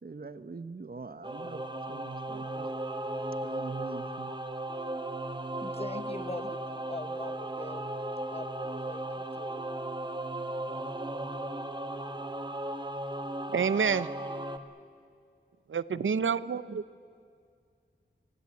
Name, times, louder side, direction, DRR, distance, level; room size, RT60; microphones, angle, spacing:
voice 1, 0.0-2.7 3.4-4.3, right 4 dB, 50° right, 13 dB, 0.9 m, -43 dB
Singing / Musical instrument, 1.2-14.6, right 1 dB, 25° right, 1.5 m, -36 dB
voice 2, 5.6-7.9 8.3-9.6, left 2 dB, 30° left, 10 dB, 1.3 m, -42 dB
voice 3, 13.5-14.1 15.7-16.8, right 6 dB, 85° right, 16 dB, 0.6 m, -28 dB
25.0 x 19.0 x 8.5 m, 2.2 s
wide cardioid pair, 75°, 20 cm